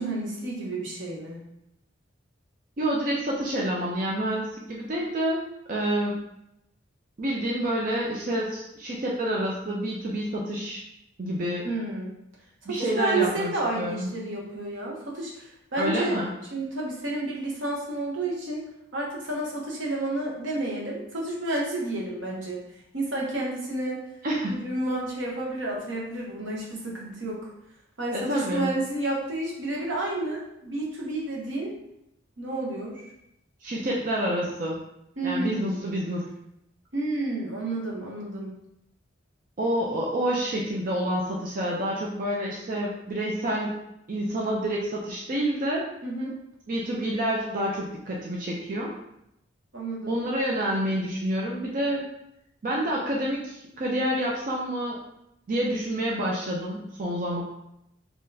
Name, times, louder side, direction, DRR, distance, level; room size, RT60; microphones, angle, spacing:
voice 1, 0.0-1.4 11.6-12.1 12.7-16.1 16.5-18.6 18.9-22.6 22.9-24.0 24.5-27.5 28.0-31.7 32.4-33.1 35.2-35.8 36.9-38.5 46.0-46.3 49.7-50.1, right 2 dB, 75° right, -2 dB, 1.0 m, -30 dB
voice 2, 2.8-6.2 7.2-10.8 11.2-11.7 12.7-14.1 15.8-16.3 24.2-24.7 28.1-28.7 33.6-34.8 35.2-36.2 39.6-43.7 44.1-45.9 46.7-48.9 50.1-52.1 52.6-55.0 55.5-57.4, right 1 dB, 45° right, -3 dB, 0.5 m, -28 dB
3.9 x 2.9 x 2.7 m, 0.81 s
head